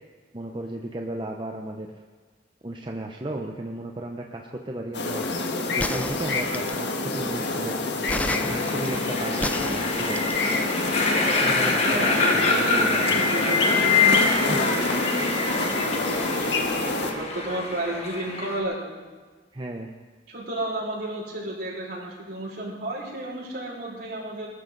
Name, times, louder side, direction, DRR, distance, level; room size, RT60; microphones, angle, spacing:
voice 1, 0.3-1.9 2.6-5.2 5.7-7.8 8.3-10.3 11.1-13.2 14.5-14.6 19.5-19.9, right 1 dB, 25° right, 2 dB, 0.9 m, -34 dB
sound 1, 4.9-17.1, left 2 dB, 70° left, 1.7 m, -27 dB
sound 2, 5.8-6.9 8.1-10.4, left 1 dB, 10° left, 0.4 m, -31 dB
sound 3, 8.3-18.6, left 4 dB, 35° left, 1.8 m, -25 dB
voice 2, 11.8-12.9 13.2-15.3 15.6-19.0 20.3-24.5, right 1 dB, 60° right, -5 dB, 5.7 m, -32 dB
22.5 x 13.5 x 4.0 m, 1.4 s
head